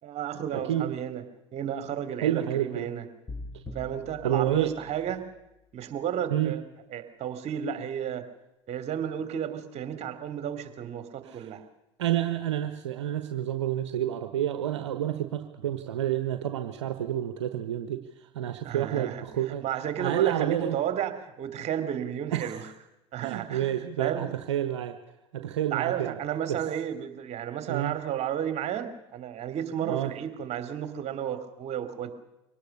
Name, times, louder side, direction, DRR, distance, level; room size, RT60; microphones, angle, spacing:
voice 1, 0.0-1.2 1.5-3.1 3.7-5.3 5.7-6.6 6.9-8.3 8.7-11.6 18.6-22.6 23.1-24.3 25.7-32.1, right 9 dB, 50° right, 10 dB, 2.9 m, -32 dB
voice 2, 0.5-0.9 2.2-2.9 3.5-3.6 4.2-4.7 6.3-6.5 11.2-11.5 12.0-19.6 20.0-20.8 22.3-22.6 23.2-25.0 25.3-26.1 26.5-26.6 27.7-27.9 29.8-30.1, right 11 dB, 80° right, 8 dB, 1.2 m, -29 dB
sound 1, 3.3-5.4, left 2 dB, 15° left, 6.9 m, -43 dB
24.0 x 18.5 x 6.7 m, 0.92 s
hypercardioid pair, 70°, 15 cm